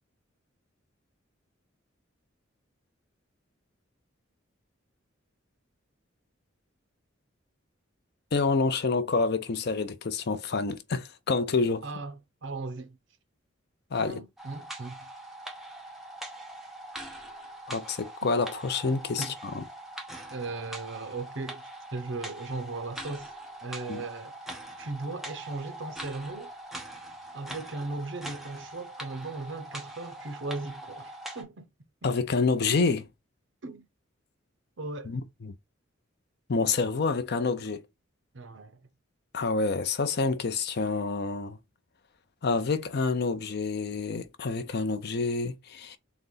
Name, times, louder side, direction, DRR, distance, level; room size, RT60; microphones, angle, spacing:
voice 1, 8.3-11.8 13.9-14.2 17.7-19.6 23.9-24.0 32.0-33.1 35.0-35.5 36.5-37.9 39.3-41.6 42.4-46.0, left 4 dB, 55° left, 0.5 m, -28 dB
voice 2, 11.8-12.1 12.4-13.0 14.0-15.1 19.2-19.3 20.3-21.6 21.9-23.3 23.6-24.4 24.8-26.5 27.3-31.7 33.6-33.8 34.8-35.2 38.3-38.8, right 3 dB, 65° right, 0.8 m, -37 dB
sound 1, 14.4-31.4, right 1 dB, ahead, 0.8 m, -42 dB
3.9 x 2.9 x 3.8 m
head